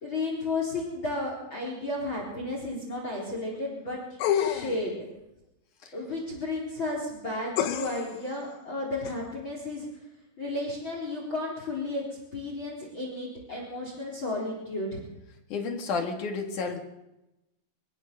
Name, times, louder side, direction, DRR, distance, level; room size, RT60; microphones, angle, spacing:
voice 1, 0.0-4.0 4.3-5.0 5.9-9.9 10.4-15.0, left 2 dB, 25° left, 0 dB, 4.0 m, -33 dB
sound 1, 4.2-4.9 7.6-8.2 9.1-9.2, left 9 dB, 80° left, 4.2 m, -28 dB
voice 2, 15.5-16.8, left 4 dB, 55° left, 3 dB, 2.5 m, -31 dB
24.5 x 16.0 x 6.8 m, 0.94 s
omnidirectional pair, 6.0 m